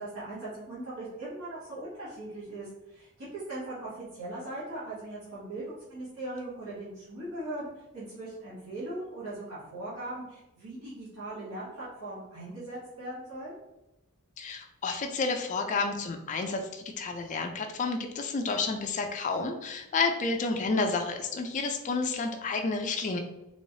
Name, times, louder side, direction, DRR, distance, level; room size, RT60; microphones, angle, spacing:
voice 1, 0.0-13.5, right 1 dB, 70° right, -10 dB, 1.1 m, -39 dB
voice 2, 14.4-23.2, left 4 dB, 35° left, 4 dB, 0.3 m, -30 dB
3.1 x 3.0 x 2.7 m, 0.94 s
head